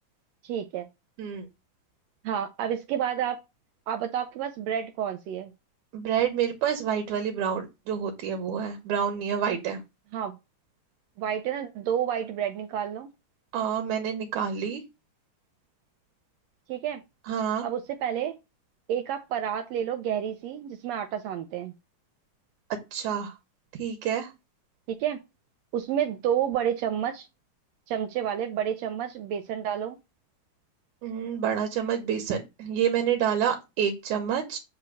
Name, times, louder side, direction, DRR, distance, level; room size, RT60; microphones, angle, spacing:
voice 1, 0.4-0.9 2.2-3.4 3.9-5.5 10.1-10.3 11.2-13.1 16.7-17.0 17.6-18.4 18.9-21.7 24.9-25.2 25.7-27.3 27.9-30.0, right 9 dB, 90° right, 1.5 m, -30 dB
voice 2, 5.9-9.8 13.5-14.8 17.3-17.7 22.9-23.3 23.8-24.3 31.0-34.6, right 8 dB, 70° right, 2.2 m, -28 dB
8.5 x 2.9 x 6.2 m
omnidirectional pair, 3.7 m